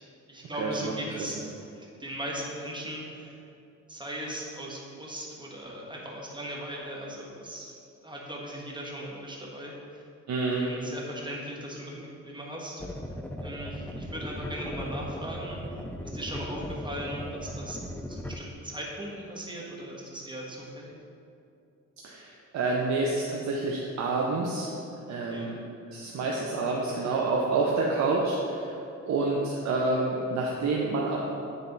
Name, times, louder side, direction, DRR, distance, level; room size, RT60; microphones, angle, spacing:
voice 1, 0.0-1.4 1.7-3.4 3.9-10.0 10.6-12.8 13.4-15.6 16.0-17.8 18.1-20.9 25.3-25.5, equal, 15° right, -3 dB, 1.3 m, -38 dB
voice 2, 0.6-0.9 1.3-1.4 10.3-10.6 22.0-24.7 25.1-25.6 25.9-31.2, right 3 dB, 65° right, -2 dB, 0.8 m, -28 dB
sound 1, 12.8-18.4, equal, 5° left, 0.4 m, -37 dB
9.3 x 3.4 x 4.0 m, 2.6 s
cardioid pair, 90°, 30 cm